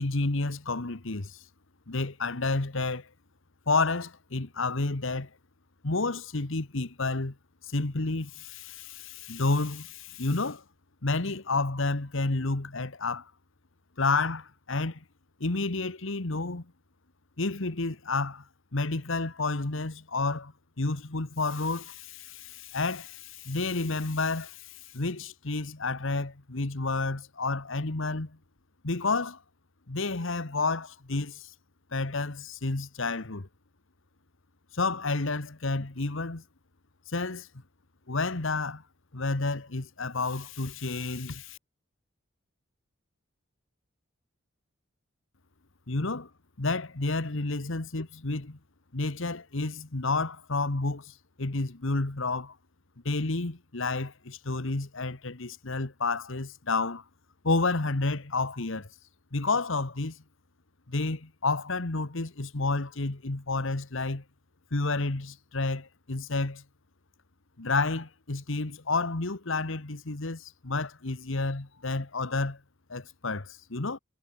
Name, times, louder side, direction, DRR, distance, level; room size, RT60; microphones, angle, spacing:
voice 1, 0.0-1.4 1.9-3.1 3.7-5.3 5.8-7.3 7.7-10.6 11.0-13.3 14.0-15.0 15.4-16.7 17.4-18.4 18.7-28.4 28.8-29.4 29.9-31.5 31.9-33.5 34.7-36.4 37.1-37.5 38.1-38.8 39.1-41.6 45.9-46.3 46.6-48.6 48.9-52.5 53.0-57.0 57.4-58.9 59.3-60.2 60.9-64.2 64.7-66.6 67.6-72.6 72.9-74.0, left 3 dB, 70° left, 1.5 m, -30 dB
head